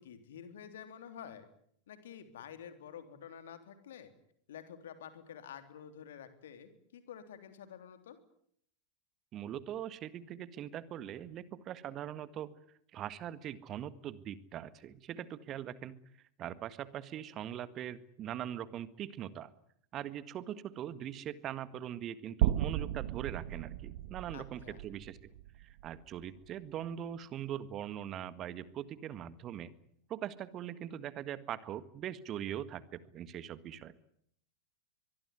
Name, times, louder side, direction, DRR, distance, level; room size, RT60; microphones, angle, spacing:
voice 1, 0.0-1.5 1.9-4.1 4.5-8.2 24.3-24.8, left 8 dB, 60° left, 9 dB, 3.5 m, -49 dB
voice 2, 9.3-12.6 12.9-16.0 16.4-19.5 19.9-25.2 25.6-29.7 30.1-33.9, right 10 dB, 30° right, 15 dB, 1.7 m, -41 dB
sound 1, 22.4-26.6, right 13 dB, 55° right, 1.3 m, -35 dB
23.5 x 22.5 x 9.6 m, 0.69 s
figure-of-eight pair, 90°, 0 cm